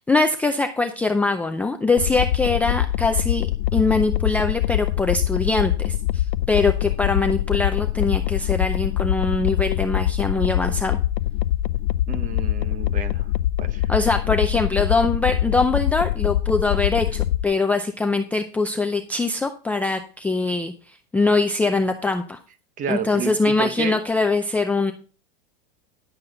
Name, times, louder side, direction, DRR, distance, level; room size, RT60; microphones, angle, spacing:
voice 1, 0.1-3.5 3.7-11.0 13.9-22.4 22.9-24.9, left 3 dB, 5° left, 0.4 m, -22 dB
sound 1, 2.0-17.4, left 13 dB, 85° left, 0.6 m, -24 dB
voice 2, 12.1-13.3 13.6-13.9 22.8-24.0, right 7 dB, 25° right, 1.0 m, -30 dB
11.0 x 7.7 x 3.8 m
supercardioid pair, 145°, 29 cm